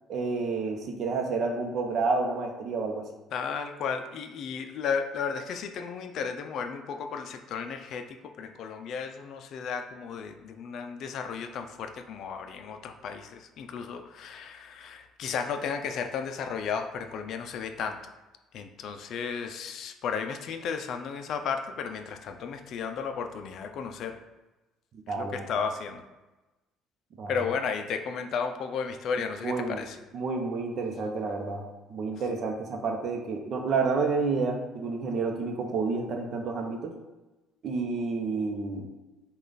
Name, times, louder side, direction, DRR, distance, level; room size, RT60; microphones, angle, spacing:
voice 1, 0.1-3.1 25.1-25.5 27.2-27.3 29.4-29.8 30.1-36.9 37.6-38.9, right 4 dB, 50° right, 3 dB, 0.7 m, -30 dB
voice 2, 3.3-18.1 18.5-24.2 25.1-26.0 27.3-30.0, left 6 dB, 60° left, 7 dB, 0.4 m, -34 dB
5.2 x 2.4 x 3.9 m, 1.1 s
cardioid pair, 115°, 0 cm